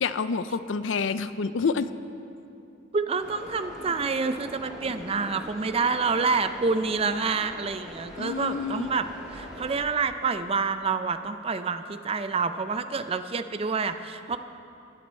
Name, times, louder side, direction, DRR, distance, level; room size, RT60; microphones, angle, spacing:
voice 1, 0.0-1.9 8.2-8.9, left 5 dB, 70° left, 13 dB, 0.5 m, -28 dB
voice 2, 2.9-9.1 9.3-14.4, right 4 dB, 30° right, 10 dB, 0.4 m, -27 dB
sound 1, 3.2-9.8, equal, 5° right, 2.6 m, -43 dB
19.0 x 10.0 x 4.4 m, 2.7 s
head